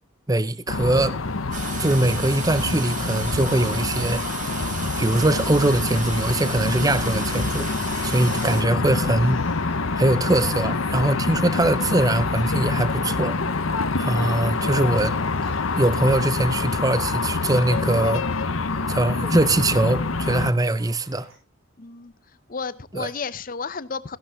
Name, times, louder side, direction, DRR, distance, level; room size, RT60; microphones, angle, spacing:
voice 1, 0.3-1.2 1.8-4.2 5.0-7.7 8.0-9.4 10.0-13.3 14.0-15.1 15.8-18.2 18.9-21.3 22.9-23.1, right 1 dB, 15° right, 0.6 m, -22 dB
sound 1, 0.7-20.5, left 3 dB, 75° left, 1.0 m, -26 dB
Toilet flush, 1.5-8.6, right 6 dB, 35° right, 1.8 m, -34 dB
sound 2, 3.7-21.4, right 1 dB, 80° right, 6.6 m, -49 dB
voice 2, 21.8-24.2, left 5 dB, 40° left, 0.7 m, -33 dB
15.5 x 11.5 x 3.5 m
head